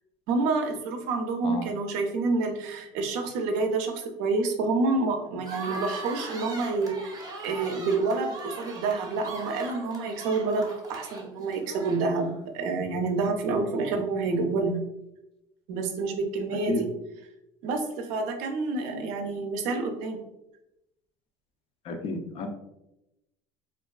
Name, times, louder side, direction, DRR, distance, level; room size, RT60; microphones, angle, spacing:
voice 1, 0.3-14.8 15.7-16.9 17.6-20.2, right 3 dB, 75° right, 4 dB, 0.5 m, -28 dB
sound 1, 5.4-12.4, right 2 dB, 30° right, 0.6 m, -40 dB
voice 2, 21.8-22.5, left 3 dB, 45° left, 5 dB, 0.4 m, -31 dB
2.4 x 2.3 x 2.3 m, 0.89 s
supercardioid pair, 105°, 13 cm